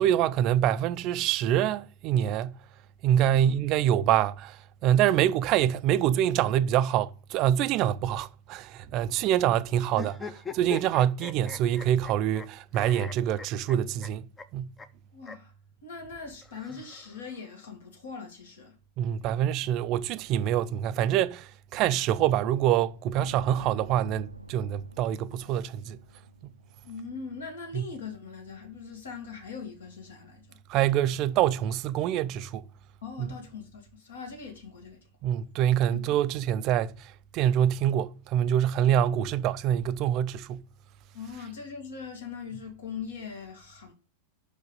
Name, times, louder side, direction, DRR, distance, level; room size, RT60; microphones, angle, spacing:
voice 1, 0.0-2.6 3.0-14.7 19.0-26.0 26.4-26.5 27.7-27.8 30.7-32.6 33.2-33.3 35.2-40.6, right 11 dB, 40° right, 0.5 m, -25 dB
sound 1, 9.9-12.5 12.7-14.1 14.4-14.5 14.8-14.9 15.2-15.4 16.4-17.4, left 5 dB, 15° left, 0.7 m, -40 dB
voice 2, 15.1-15.5 15.8-18.8 26.8-30.6 33.0-35.0 35.9-36.0 38.9-39.0 41.1-43.9, left 5 dB, 65° left, 2.2 m, -41 dB
sound 2, 23.1-27.4 27.7-27.8, right 2 dB, 85° right, 0.5 m, -47 dB
5.9 x 5.2 x 5.4 m
figure-of-eight pair, 90°, 0 cm